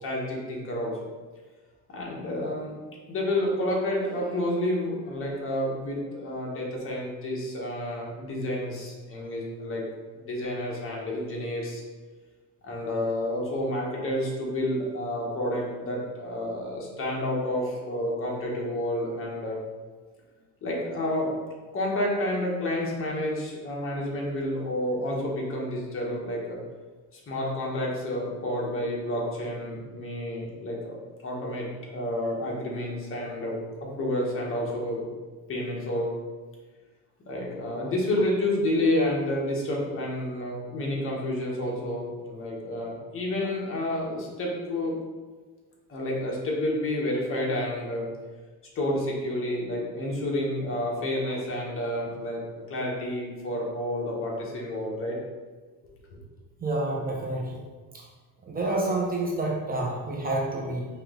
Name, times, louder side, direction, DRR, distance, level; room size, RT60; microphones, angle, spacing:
voice 1, 0.0-1.1 1.9-2.8 3.1-9.8 10.1-11.8 12.6-19.6 20.6-21.3 21.7-26.6 27.1-31.0 31.2-35.1 35.5-36.1 37.3-45.0 45.9-48.1 48.7-55.2, left 1 dB, 35° left, -3 dB, 1.2 m, -30 dB
voice 2, 56.6-57.6 58.5-60.9, right 2 dB, 25° right, -3 dB, 0.7 m, -28 dB
4.7 x 2.9 x 3.8 m, 1.4 s
cardioid pair, 135°, 35 cm